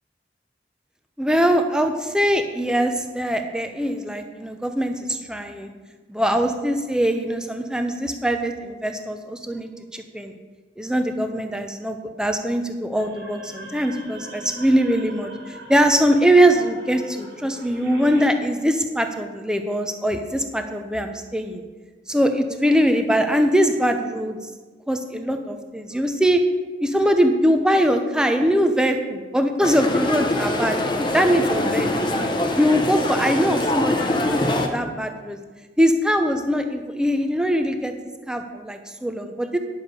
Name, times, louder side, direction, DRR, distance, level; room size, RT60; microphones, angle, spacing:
voice 1, 1.2-5.7 6.1-10.3 10.8-21.6 22.1-24.4 24.9-26.4 26.8-31.9 32.6-35.4 35.8-37.9 38.3-39.6, equal, 5° right, 6 dB, 0.7 m, -22 dB
sound 1, 13.0-18.2, right 1 dB, 65° right, 2.3 m, -41 dB
sound 2, 29.6-34.7, left 1 dB, 25° left, 0.9 m, -23 dB
10.0 x 6.7 x 5.3 m, 1.4 s
head